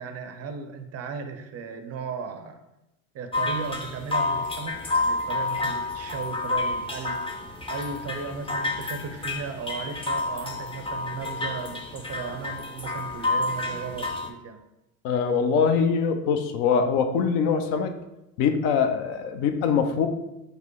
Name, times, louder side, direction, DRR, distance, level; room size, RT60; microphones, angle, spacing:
voice 1, 0.0-2.6 3.1-7.2 7.7-14.6, right 5 dB, 35° right, 7 dB, 0.5 m, -36 dB
sound 1, 3.3-14.3, left 2 dB, 15° left, 0.5 m, -29 dB
voice 2, 15.0-17.9 18.4-20.1, left 6 dB, 65° left, 7 dB, 0.7 m, -23 dB
5.2 x 2.0 x 4.5 m, 0.93 s
hypercardioid pair, 85°, 44 cm